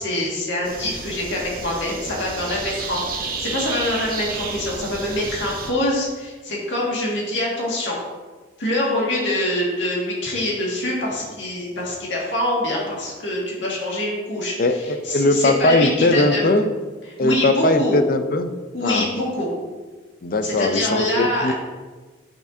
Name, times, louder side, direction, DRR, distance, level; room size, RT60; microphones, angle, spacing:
voice 1, 0.0-8.0 8.6-14.5 15.1-16.6 17.2-18.0 18.7-19.6 20.4-21.5, left 1 dB, 80° left, -4 dB, 1.9 m, -25 dB
sound 1, 0.6-5.7, right 4 dB, 50° right, 0.9 m, -31 dB
voice 2, 14.6-16.7 17.2-18.5 18.8-19.1 20.2-21.5, left 2 dB, 45° left, 8 dB, 0.5 m, -19 dB
8.2 x 6.5 x 2.7 m, 1.3 s
head